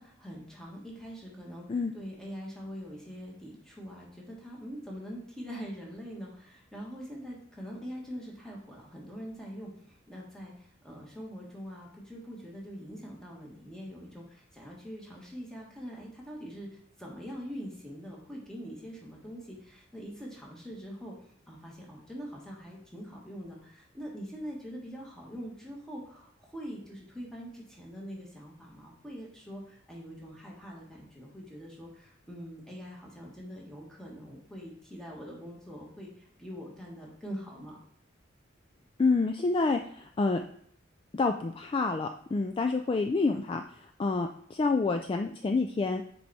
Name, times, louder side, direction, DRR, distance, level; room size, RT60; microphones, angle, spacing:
voice 1, 0.0-37.8, equal, 5° left, -3 dB, 1.5 m, -43 dB
voice 2, 39.0-40.4 41.1-43.6 44.0-46.0, left 3 dB, 25° left, 5 dB, 0.3 m, -28 dB
6.2 x 4.6 x 4.1 m, 0.63 s
head